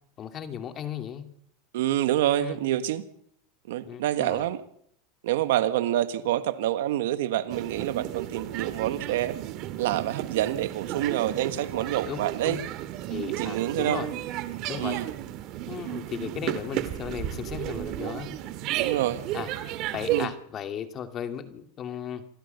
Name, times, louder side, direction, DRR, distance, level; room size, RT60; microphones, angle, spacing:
voice 1, 0.2-1.3 2.4-2.6 3.8-4.5 11.6-12.6 13.1-14.1 14.7-15.0 15.7-18.3 19.3-19.5 19.9-22.2, left 9 dB, 35° left, 2.5 m, -36 dB
voice 2, 1.7-3.0 3.7-4.6 5.2-9.4 9.8-12.6 13.3-14.0 14.8-15.1 18.7-19.2 20.1-20.3, right 13 dB, 75° right, 1.4 m, -27 dB
sound 1, 7.5-20.3, right 13 dB, 50° right, 2.2 m, -33 dB
27.0 x 16.0 x 7.0 m
supercardioid pair, 120°, 0 cm